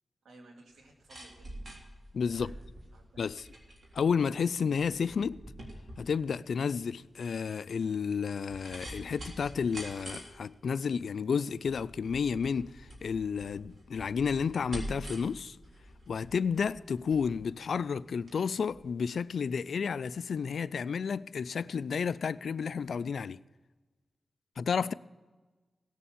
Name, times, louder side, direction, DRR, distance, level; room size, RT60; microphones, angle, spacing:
voice 1, 0.2-1.5 2.3-2.5 2.9-3.2, right 2 dB, 90° right, 2.3 m, -56 dB
sound 1, 0.7-18.4 18.7-18.8, right 1 dB, 55° right, 3.6 m, -47 dB
voice 2, 2.1-2.5 3.2-3.5 3.9-5.4 6.0-15.6 16.1-23.4 24.6-24.9, left 6 dB, 80° left, 0.3 m, -31 dB
17.5 x 7.0 x 7.3 m
cardioid pair, 55°, 0 cm